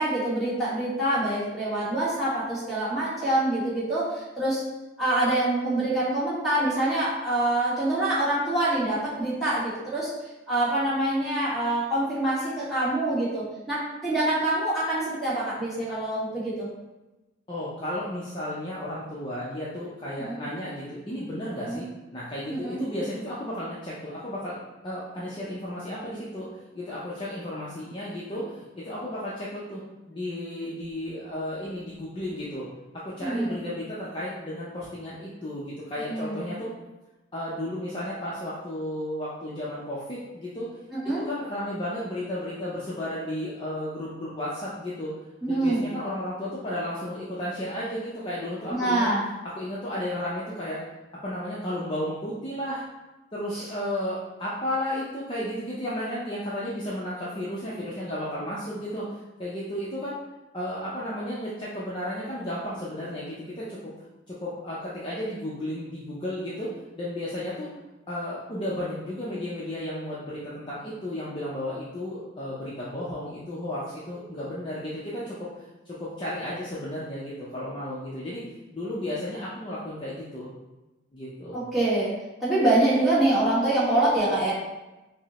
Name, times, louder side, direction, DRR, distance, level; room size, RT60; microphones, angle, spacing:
voice 1, 0.0-4.6 5.0-10.1 10.5-16.7 20.2-20.3 21.6-21.8 22.5-22.8 33.2-33.5 36.1-36.4 40.9-41.2 45.4-45.8 48.7-49.2 53.5-53.6 81.5-82.1 82.4-84.5, right 1 dB, ahead, -11 dB, 1.3 m, -25 dB
voice 2, 17.5-21.8 22.1-26.5 26.7-29.8 30.1-32.7 32.9-36.7 37.3-40.7 41.2-45.1 45.5-49.1 49.6-50.8 51.2-52.8 53.3-60.1 60.5-63.9 64.3-67.7 68.1-78.4 78.7-80.5 81.1-81.6, left 1 dB, 25° left, -8 dB, 0.5 m, -33 dB
5.2 x 2.0 x 2.8 m, 1.0 s
head